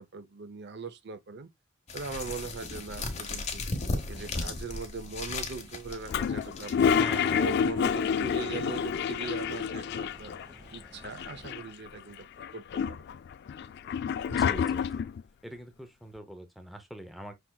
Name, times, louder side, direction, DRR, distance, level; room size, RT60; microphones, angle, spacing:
voice 1, 0.0-1.5 1.9-3.7 4.1-6.9 7.3-10.3 10.7-12.3 12.5-13.0, right 5 dB, 55° right, 0.6 m, -40 dB
sound 1, 1.9-7.2, left 2 dB, 35° left, 1.0 m, -36 dB
sound 2, 5.9-11.5, equal, 20° right, 1.0 m, -55 dB
Toilet flush, 6.1-10.5 10.7-10.8 11.0-11.9 12.4-15.2, left 7 dB, 55° left, 0.3 m, -28 dB
voice 2, 7.0-7.5 14.3-15.1 15.4-17.3, equal, ahead, 0.6 m, -42 dB
5.9 x 3.3 x 2.2 m
head